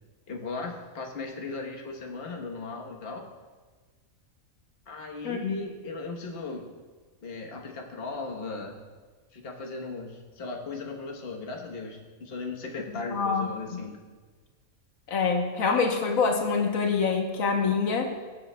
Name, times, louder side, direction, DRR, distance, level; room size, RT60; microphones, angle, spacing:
voice 1, 0.3-3.3 4.9-6.7 7.2-8.8 9.3-14.0, left 3 dB, 50° left, 0 dB, 1.3 m, -37 dB
voice 2, 5.2-5.6 13.1-13.5 15.1-18.1, left 5 dB, 85° left, 3 dB, 1.4 m, -25 dB
21.5 x 7.6 x 2.2 m, 1.4 s
omnidirectional pair, 1.4 m